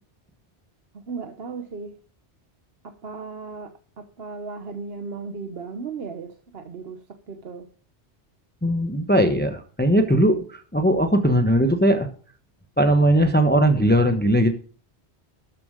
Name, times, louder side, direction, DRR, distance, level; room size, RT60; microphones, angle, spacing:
voice 1, 0.9-2.0 2.8-7.7, right 4 dB, 60° right, 1.2 m, -36 dB
voice 2, 8.6-12.1 12.8-14.5, right 1 dB, 10° left, 1.0 m, -19 dB
13.0 x 7.5 x 5.1 m
omnidirectional pair, 1.2 m